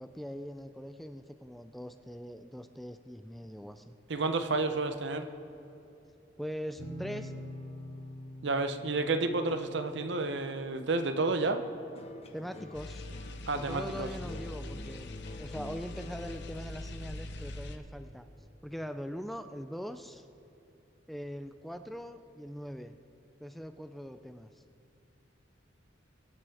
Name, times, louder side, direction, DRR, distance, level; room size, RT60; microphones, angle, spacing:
voice 1, 0.0-4.0 6.4-7.3 12.3-13.1 13.5-18.3 18.6-20.3 21.1-22.9 23.4-24.6, equal, ahead, 8 dB, 0.3 m, -42 dB
voice 2, 4.1-5.3 8.4-11.6 13.5-14.1, right 3 dB, 65° right, 8 dB, 0.8 m, -30 dB
sound 1, 6.8-12.4, left 1 dB, 80° left, 2.1 m, -46 dB
sound 2, 11.4-19.8 20.2-20.8, left 1 dB, 35° left, 0.8 m, -51 dB
sound 3, 12.7-17.8, left 2 dB, 65° left, 0.9 m, -42 dB
23.0 x 9.5 x 3.4 m, 2.8 s
head